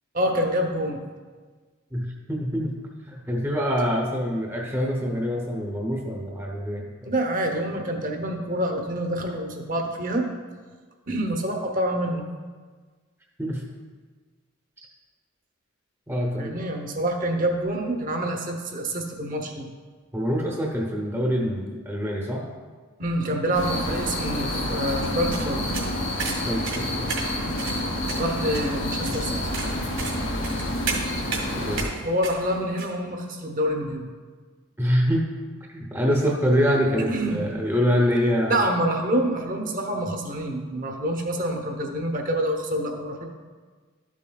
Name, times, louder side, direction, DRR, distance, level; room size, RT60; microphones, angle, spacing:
voice 1, 0.1-1.0 7.0-10.3 11.1-12.2 16.4-19.7 23.0-25.6 28.2-29.3 32.0-34.1 37.1-37.5 38.5-43.3, right 1 dB, 40° right, 3 dB, 0.9 m, -27 dB
voice 2, 1.9-2.7 3.1-7.1 13.4-13.6 16.1-16.6 20.1-22.5 26.5-27.2 31.5-32.0 34.8-35.3 35.7-38.6, equal, 10° right, -1 dB, 0.7 m, -25 dB
sound 1, 23.5-31.9, left 1 dB, 75° left, 2.3 m, -28 dB
sound 2, 25.0-32.9, right 4 dB, 65° right, 2.1 m, -34 dB
12.5 x 7.3 x 2.3 m, 1.5 s
head